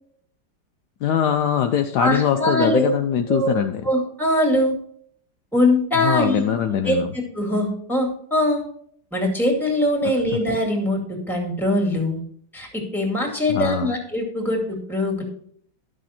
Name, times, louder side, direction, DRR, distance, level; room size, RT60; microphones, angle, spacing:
voice 1, 1.0-3.9 5.9-7.1 13.5-13.9, left 9 dB, 70° left, 7 dB, 1.1 m, -22 dB
voice 2, 2.0-2.9 3.3-3.5 3.8-4.7 5.5-6.4 6.8-8.6 9.1-11.0 11.3-12.2 12.5-15.2, left 1 dB, ahead, 1 dB, 2.2 m, -22 dB
12.0 x 6.3 x 4.3 m, 0.62 s
omnidirectional pair, 2.0 m